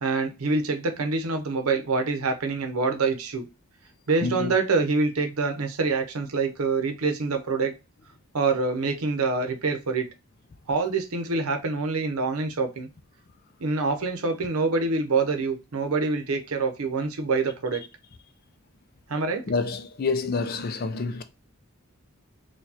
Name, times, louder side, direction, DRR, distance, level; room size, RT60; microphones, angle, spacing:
voice 1, 0.0-3.4 4.1-7.7 8.3-10.1 10.7-12.9 13.6-17.8 19.1-19.5, right 4 dB, 80° right, 0.7 m, -26 dB
voice 2, 4.2-4.5 19.5-21.2, left 4 dB, 45° left, 0.4 m, -28 dB
4.4 x 2.3 x 2.8 m
head